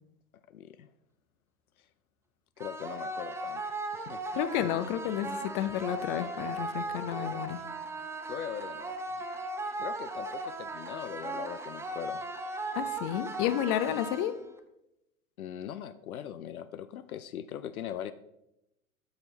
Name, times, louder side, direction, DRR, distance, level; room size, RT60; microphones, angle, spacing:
voice 1, 0.5-0.9 2.6-3.6 3.9-4.2 7.1-7.4 8.3-9.0 9.8-12.2 15.4-18.1, left 9 dB, 75° left, 13 dB, 0.6 m, -40 dB
sound 1, 2.6-14.6, right 2 dB, 5° right, 0.5 m, -37 dB
voice 2, 4.4-7.6 12.7-14.4, left 11 dB, 40° left, 12 dB, 0.6 m, -31 dB
12.0 x 6.1 x 3.2 m, 0.86 s
figure-of-eight pair, 95°, 43 cm